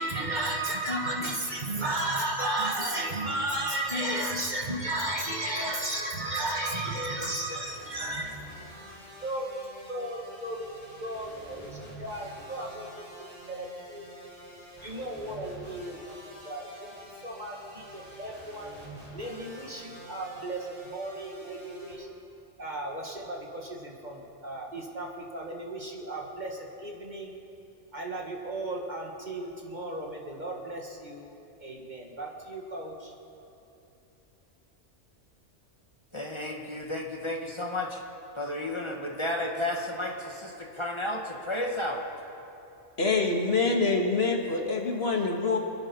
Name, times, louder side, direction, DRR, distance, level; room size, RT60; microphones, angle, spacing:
voice 1, 0.0-8.4 9.2-9.5 9.9-10.7 11.0-12.9 13.2-14.1 14.8-16.2 16.4-16.9 17.2-18.7 19.1-22.1 22.6-27.4 27.9-31.3 31.6-33.1, right 1 dB, 40° right, -1 dB, 1.8 m, -34 dB
sound 1, 7.6-21.9, right 1 dB, 20° right, 5.3 m, -47 dB
voice 2, 36.1-38.0 38.4-42.0, left 1 dB, 25° left, 0 dB, 1.6 m, -32 dB
voice 3, 43.0-45.6, left 3 dB, 55° left, 1 dB, 1.9 m, -25 dB
26.0 x 10.0 x 5.4 m, 2.8 s
omnidirectional pair, 1.2 m